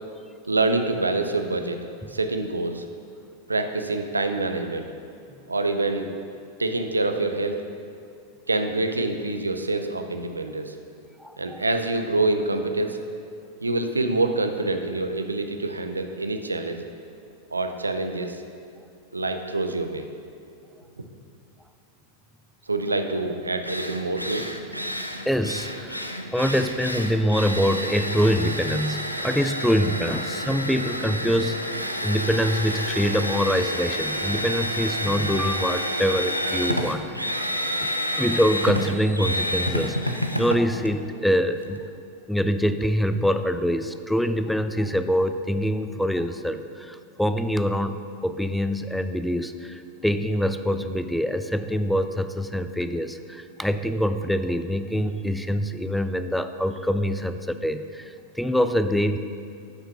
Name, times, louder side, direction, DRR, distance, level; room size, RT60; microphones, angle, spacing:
voice 1, 0.5-1.8 2.1-2.8 3.5-4.9 5.5-6.1 6.6-7.6 8.5-10.7 11.4-13.0 13.6-16.9 17.5-18.4 19.1-20.1 22.7-24.5, right 2 dB, 80° right, 7 dB, 0.6 m, -26 dB
voice 2, 11.2-11.6 25.3-37.4 37.8-37.9 38.2-41.9 42.3-59.2, equal, ahead, 10 dB, 0.4 m, -25 dB
Drill, 23.2-23.3 23.6-41.8, equal, 90° left, 0.5 m, -29 dB
8.1 x 5.7 x 5.8 m, 2.4 s
figure-of-eight pair, 90°, 0 cm